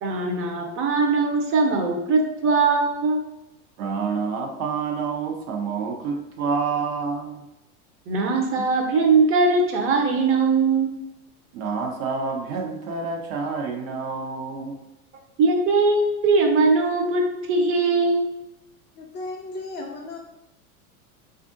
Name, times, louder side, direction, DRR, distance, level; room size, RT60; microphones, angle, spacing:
voice 1, 0.0-3.2 8.1-10.9 15.4-17.2 17.5-18.3, right 3 dB, 30° right, 2 dB, 0.6 m, -20 dB
voice 2, 3.8-7.4 8.6-8.8 11.5-14.8, right 5 dB, 70° right, 2 dB, 0.8 m, -28 dB
voice 3, 19.0-20.2, left 2 dB, 25° left, -1 dB, 0.4 m, -35 dB
3.4 x 2.5 x 2.5 m, 0.93 s
hypercardioid pair, 100°, 44 cm